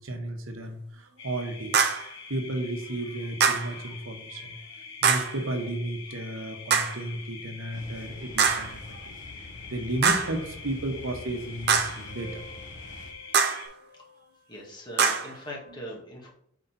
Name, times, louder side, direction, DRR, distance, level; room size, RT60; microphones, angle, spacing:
voice 1, 0.0-1.8 2.3-4.6 5.0-14.3, right 1 dB, 85° right, 4 dB, 1.1 m, -34 dB
sound 1, 1.2-13.7, left 5 dB, 70° left, 1.9 m, -45 dB
sound 2, 1.7-2.1 3.4-3.8 5.0-5.4 6.7-7.0 8.4-8.7 10.0-10.4 11.7-12.0 13.3-13.7 15.0-15.4, right 6 dB, 55° right, 0.7 m, -23 dB
sound 3, 7.7-13.1, left 2 dB, 40° left, 1.0 m, -46 dB
voice 2, 14.5-16.3, equal, 25° left, -3 dB, 1.7 m, -40 dB
4.9 x 4.0 x 5.8 m, 0.66 s
head